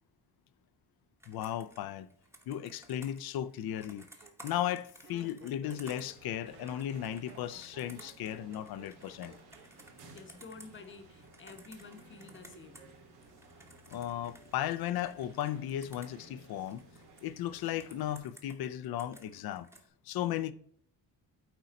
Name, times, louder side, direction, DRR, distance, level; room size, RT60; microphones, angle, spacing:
Computer keyboard, 1.2-12.9 13.2-17.2 17.6-19.9, right 1 dB, 5° right, 1.0 m, -57 dB
voice 1, 1.3-2.1 2.5-4.1 4.4-9.4 13.9-16.8 17.2-19.7 20.1-20.5, left 11 dB, 65° left, 0.6 m, -36 dB
Laughter, 2.2-2.7 3.3-9.9 10.2-10.7, right 4 dB, 30° right, 0.9 m, -57 dB
sound 1, 6.0-18.2, right 2 dB, 85° right, 2.4 m, -57 dB
voice 2, 10.1-12.9, left 4 dB, 30° left, 0.9 m, -50 dB
9.2 x 3.9 x 4.1 m
cardioid pair, 150°, 40 cm